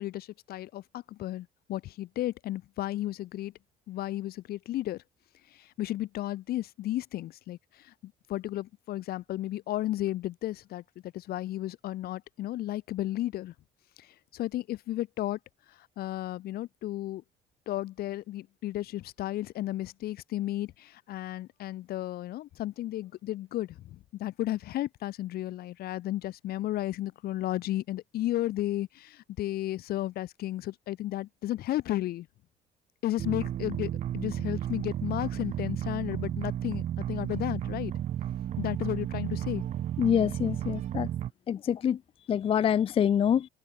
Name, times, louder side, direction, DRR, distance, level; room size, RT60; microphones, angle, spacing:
voice 1, 0.0-3.5 3.9-5.0 5.5-13.5 14.0-15.4 15.7-17.2 17.7-32.3 33.0-37.9 38.6-39.6, left 14 dB, 65° left, 0.8 m, -33 dB
sound 1, 33.2-41.3, right 11 dB, 45° right, 0.4 m, -33 dB
voice 2, 40.0-41.1 41.5-42.0 42.3-43.5, left 9 dB, 35° left, 0.4 m, -25 dB
cardioid pair, 110°, 17 cm